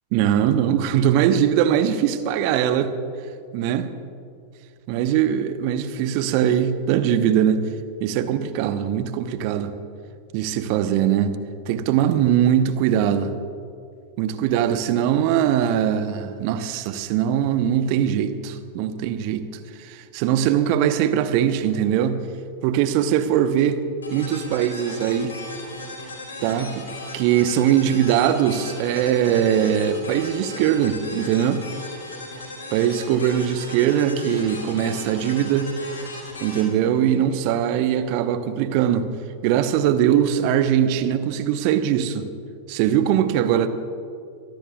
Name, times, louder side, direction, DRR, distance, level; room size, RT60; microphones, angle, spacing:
voice 1, 0.1-2.9 3.5-3.9 4.9-7.6 8.0-9.7 10.3-11.4 11.7-13.3 14.2-19.5 19.8-22.2 22.6-23.8 24.1-25.4 26.4-26.9 27.1-31.6 32.7-35.7 36.4-39.1 39.4-42.3 42.7-43.7, right 10 dB, 45° right, 11 dB, 0.9 m, -21 dB
sound 1, 24.0-37.7, left 2 dB, 75° left, 4.1 m, -37 dB
24.0 x 18.0 x 2.4 m, 2.4 s
figure-of-eight pair, 90°, 0 cm